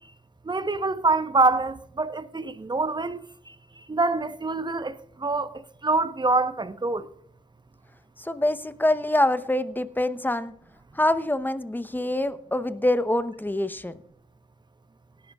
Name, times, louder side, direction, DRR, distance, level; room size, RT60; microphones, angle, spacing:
voice 1, 0.4-3.2 3.9-5.5 5.8-7.1, right 3 dB, 25° right, 0.9 m, -25 dB
voice 2, 8.2-10.5 11.0-13.9, left 1 dB, 10° left, 0.8 m, -25 dB
18.0 x 10.5 x 2.4 m
supercardioid pair, 45°, 18 cm